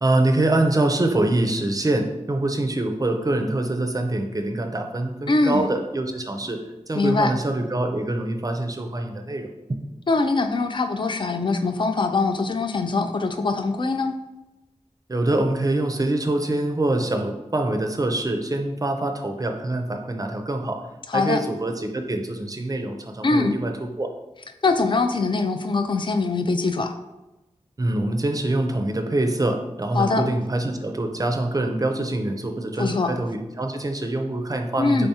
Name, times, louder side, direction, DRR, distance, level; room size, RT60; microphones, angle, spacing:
voice 1, 0.0-6.6 6.9-9.8 15.1-20.8 21.1-24.1 27.8-35.1, right 2 dB, 30° right, 4 dB, 0.4 m, -25 dB
voice 2, 5.3-5.7 6.9-7.3 10.1-14.1 21.1-21.4 23.2-23.6 24.6-26.9 29.9-30.3 32.8-33.1 34.8-35.1, left 3 dB, 40° left, 7 dB, 0.3 m, -22 dB
3.4 x 3.4 x 2.8 m, 1.0 s
wide cardioid pair, 60°, 12 cm